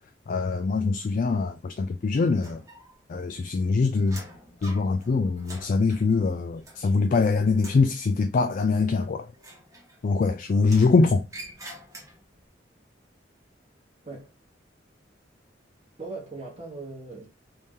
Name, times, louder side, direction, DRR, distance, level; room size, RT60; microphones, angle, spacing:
voice 1, 0.3-2.6 3.1-4.2 4.6-9.3 10.0-11.2, left 4 dB, 45° left, 0.3 m, -23 dB
sound 1, 2.4-3.2 3.5-7.2 7.5-7.9 9.3-10.2 10.6-12.4, right 1 dB, 20° right, 1.1 m, -46 dB
voice 2, 16.0-17.3, right 3 dB, 35° right, 1.0 m, -39 dB
3.2 x 2.7 x 3.5 m
head